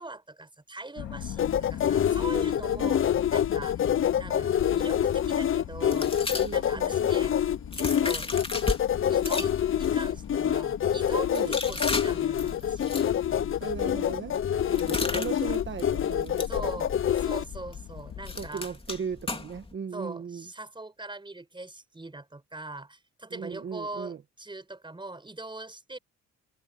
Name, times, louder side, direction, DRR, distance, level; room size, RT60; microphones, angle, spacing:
voice 1, 0.0-3.8 4.2-6.1 6.5-7.3 7.7-8.3 9.1-13.0 14.6-15.5 16.5-18.7 19.9-26.0, right 2 dB, 15° right, 5.0 m, -41 dB
sound 1, 1.0-18.5, left 10 dB, 70° left, 3.0 m, -41 dB
sound 2, 1.4-17.4, left 9 dB, 45° left, 0.7 m, -26 dB
sound 3, 5.9-8.8 9.2-19.7, left 3 dB, 20° left, 2.8 m, -37 dB
voice 2, 6.4-7.0 11.3-11.5 13.6-14.4 14.9-16.7 18.3-20.5 23.3-24.2, right 6 dB, 40° right, 1.4 m, -37 dB
open air
cardioid pair, 90°, 30 cm